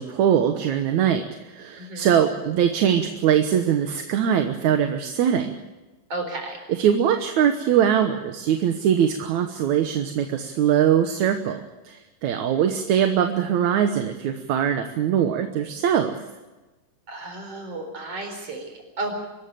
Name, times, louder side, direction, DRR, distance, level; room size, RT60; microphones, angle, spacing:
voice 1, 0.0-5.6 6.7-16.2, right 9 dB, 65° right, 5 dB, 2.2 m, -22 dB
voice 2, 1.8-2.1 6.1-6.6 17.1-19.1, right 2 dB, 45° right, 4 dB, 5.2 m, -33 dB
24.5 x 14.0 x 9.0 m, 1.1 s
omnidirectional pair, 4.0 m